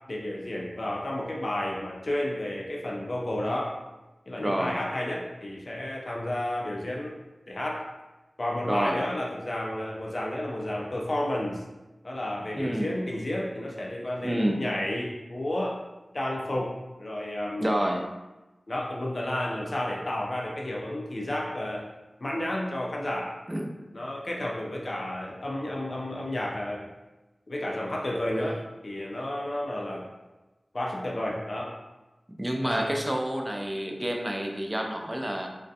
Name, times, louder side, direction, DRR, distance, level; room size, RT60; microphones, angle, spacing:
voice 1, 0.1-3.8 4.3-7.2 7.5-7.9 8.4-11.6 12.0-15.8 16.1-17.7 18.7-21.9 22.2-23.3 23.9-26.9 27.5-30.1 30.7-31.7 32.6-33.0, left 1 dB, 55° left, -2 dB, 0.4 m, -31 dB
voice 2, 4.4-4.8 8.7-9.0 12.6-12.9 14.2-14.6 17.6-18.1 23.5-23.7 32.4-35.5, equal, 15° right, 2 dB, 0.3 m, -28 dB
2.4 x 2.1 x 2.6 m, 1.1 s
wide cardioid pair, 70°, 0 cm